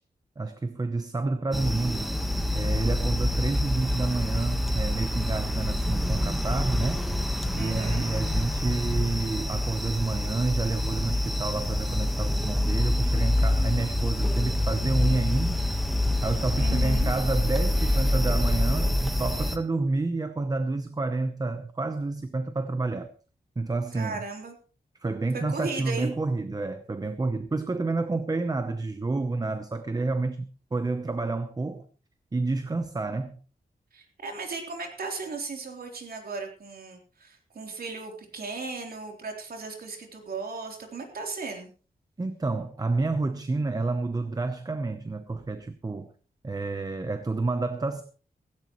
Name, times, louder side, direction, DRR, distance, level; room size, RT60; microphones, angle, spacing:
voice 1, 0.4-2.1 2.5-7.1 7.6-15.6 16.2-23.1 23.6-24.2 25.0-31.9 32.3-33.4 42.2-46.1 46.4-48.0, right 3 dB, 25° right, 0.9 m, -29 dB
sound 1, 1.5-19.6, left 1 dB, ahead, 1.4 m, -26 dB
voice 2, 7.5-8.1 16.6-17.1 24.0-24.5 25.3-26.1 33.9-41.7, right 4 dB, 70° right, 3.6 m, -36 dB
16.5 x 16.0 x 3.1 m
wide cardioid pair, 170°, 16 cm